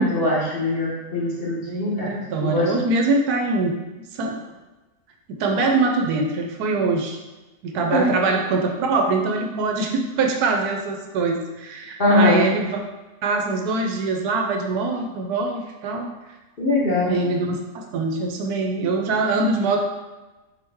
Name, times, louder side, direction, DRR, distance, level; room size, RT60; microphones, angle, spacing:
voice 1, 0.0-2.1 2.4-2.7 7.9-8.1 12.0-12.5 16.6-17.1, left 2 dB, 40° left, -7 dB, 1.2 m, -21 dB
voice 2, 1.7-3.7 4.1-4.4 5.3-7.2 7.6-12.8 13.2-16.1 17.0-19.8, right 3 dB, 80° right, 3 dB, 1.1 m, -23 dB
4.1 x 3.0 x 3.5 m, 1.1 s
omnidirectional pair, 1.6 m